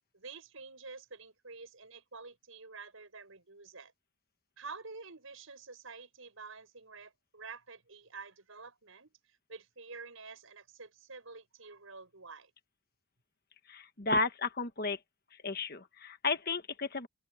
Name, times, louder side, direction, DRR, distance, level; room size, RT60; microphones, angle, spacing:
voice 1, 0.1-3.9 4.6-12.5, right 4 dB, 70° right, 6.1 m, -49 dB
voice 2, 13.7-15.0 15.4-17.1, left 3 dB, 45° left, 1.4 m, -33 dB
open air
head